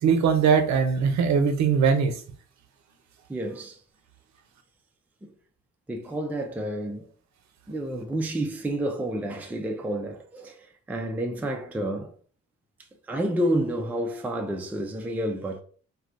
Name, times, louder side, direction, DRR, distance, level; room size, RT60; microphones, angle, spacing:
voice 1, 0.0-2.1, right 6 dB, 65° right, 0.6 m, -21 dB
voice 2, 3.3-3.8 5.2-5.3 5.9-7.1 7.7-12.1 13.1-15.6, right 1 dB, 5° right, 0.4 m, -30 dB
3.2 x 2.3 x 2.4 m
cardioid pair, 90°, 30 cm